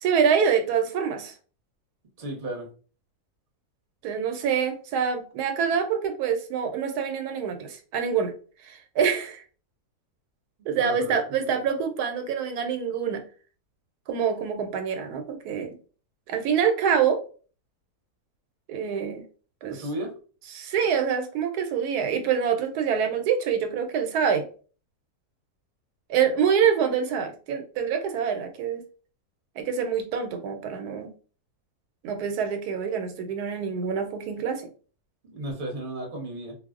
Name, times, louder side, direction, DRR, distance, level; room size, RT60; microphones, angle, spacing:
voice 1, 0.0-1.3 4.0-8.3 8.6-9.4 10.7-13.2 14.1-15.8 16.3-17.2 18.7-19.2 19.6-19.8 20.5-24.5 26.1-28.8 29.6-31.1 32.0-34.7, right 7 dB, 85° right, 6 dB, 1.1 m, -26 dB
voice 2, 2.2-2.7 10.7-11.1 11.4-11.6 19.6-20.1 35.2-36.5, right 1 dB, 40° right, 0 dB, 0.9 m, -34 dB
2.6 x 2.0 x 3.5 m, 0.39 s
omnidirectional pair, 1.6 m